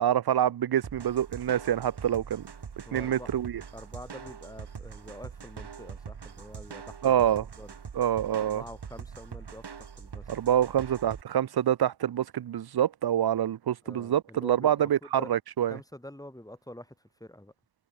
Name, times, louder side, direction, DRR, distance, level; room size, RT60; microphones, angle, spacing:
voice 1, 0.0-2.4 2.9-3.5 7.0-7.4 8.0-8.6 10.3-15.8, right 10 dB, 70° right, 0.6 m, -26 dB
sound 1, 0.8-11.2, right 6 dB, 90° right, 6.6 m, -43 dB
voice 2, 2.8-3.3 3.7-7.2 7.6-7.7 8.4-10.3 10.6-10.7 13.8-15.3 15.7-17.5, left 1 dB, 10° left, 7.9 m, -46 dB
wide cardioid pair, 105°, 39 cm